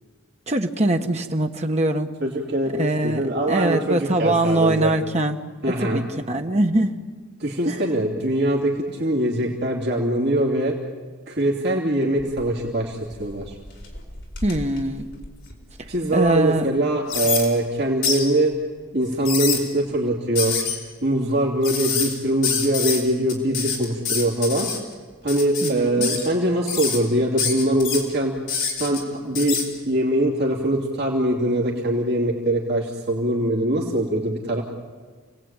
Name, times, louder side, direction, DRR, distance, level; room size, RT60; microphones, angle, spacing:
voice 1, 0.5-2.1 2.7-5.4 5.7-7.0 7.7-7.8 14.4-15.1 15.8-16.7 25.6-26.1, right 1 dB, 30° right, 5 dB, 1.4 m, -23 dB
voice 2, 2.2-4.9 5.6-6.0 7.4-10.7 11.3-13.6 15.9-18.5 18.9-20.5 21.0-24.7 25.2-28.4 28.7-29.6 29.9-34.6, right 1 dB, 50° right, -2 dB, 3.0 m, -22 dB
sound 1, 12.2-12.7 13.1-15.8 16.3-16.4 17.1-17.5 18.0-18.2 19.1-19.6 20.4-20.8 21.6-22.1 22.4-23.0 23.3-24.8 25.3-25.7 26.0-26.3 26.7-27.0 27.4-28.0 28.5-29.0 29.4-29.7, left 6 dB, 55° left, 5.0 m, -26 dB
29.5 x 18.5 x 9.0 m, 1.5 s
head